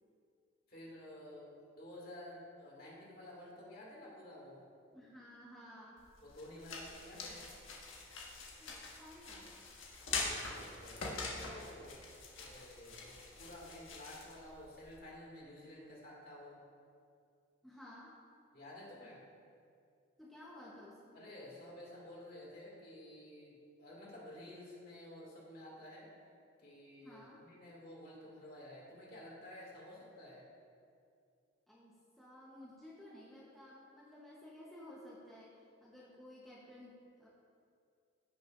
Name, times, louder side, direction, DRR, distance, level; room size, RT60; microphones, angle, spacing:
voice 1, 0.7-4.6 6.2-7.4 10.4-12.0 12.4-16.6 18.5-19.2 21.1-26.1 26.6-30.4, left 1 dB, 45° left, -5 dB, 2.4 m, -52 dB
voice 2, 4.9-6.0 8.6-9.6 17.6-18.1 20.2-21.2 27.0-27.4 31.7-37.3, left 1 dB, ahead, -7 dB, 1.0 m, -55 dB
sound 1, 6.0-15.0, left 3 dB, 80° left, 1.5 m, -44 dB
16.0 x 6.4 x 2.6 m, 2.4 s
head